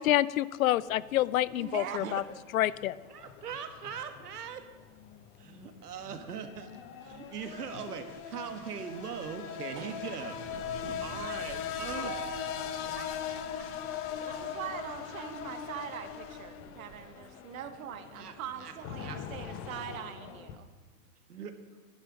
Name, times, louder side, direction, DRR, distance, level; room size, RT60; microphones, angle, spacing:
voice 1, 0.0-2.2 2.5-2.9, left 14 dB, 65° left, 20 dB, 0.6 m, -27 dB
sound 1, 0.8-20.6, left 9 dB, 30° left, 1.1 m, -41 dB
voice 2, 1.5-2.2 14.2-20.7, right 9 dB, 60° right, 9 dB, 1.6 m, -42 dB
voice 3, 3.1-4.6 5.4-6.7 7.0-12.3 12.9-13.9 14.2-14.4 15.2-15.3 18.2-18.3 18.6-18.7 19.0-19.2 21.3-21.5, right 7 dB, 80° right, 7 dB, 1.9 m, -41 dB
sound 2, 7.1-7.7 8.1-8.2 8.6-17.1, right 10 dB, 30° right, 0.7 m, -49 dB
16.0 x 10.5 x 5.3 m, 1.3 s
hypercardioid pair, 130°, 46 cm